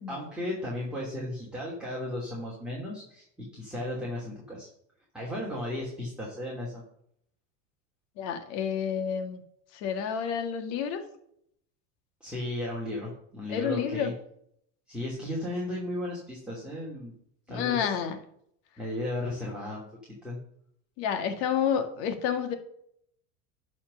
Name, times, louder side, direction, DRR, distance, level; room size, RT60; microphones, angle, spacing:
voice 1, 0.1-4.7 5.1-6.8 12.2-14.1 14.9-17.1 17.5-18.0 18.8-19.8 20.2-20.4, left 1 dB, ahead, -5 dB, 3.1 m, -35 dB
voice 2, 8.2-9.4 9.7-11.0 13.5-14.2 17.5-18.2 21.0-22.5, left 8 dB, 60° left, 7 dB, 1.9 m, -29 dB
11.5 x 4.3 x 6.4 m, 0.69 s
supercardioid pair, 115°, 39 cm